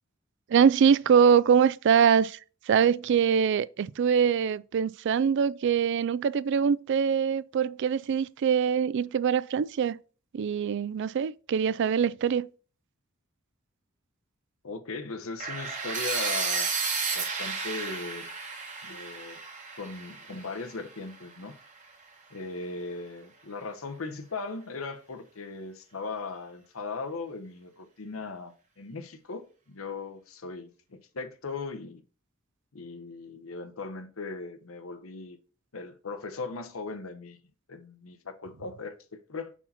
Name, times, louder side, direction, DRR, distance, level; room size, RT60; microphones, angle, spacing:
voice 1, 0.5-2.4 2.7-10.0 10.3-12.5, right 7 dB, 60° right, 0.3 m, -23 dB
voice 2, 14.6-16.7 17.1-18.3 18.8-19.4 19.8-21.6 22.3-32.0 32.7-35.4 35.7-37.4 37.7-39.5, left 3 dB, 90° left, 0.9 m, -38 dB
sound 1, 15.4-21.3, right 5 dB, 35° right, 1.3 m, -32 dB
5.7 x 4.6 x 4.1 m
head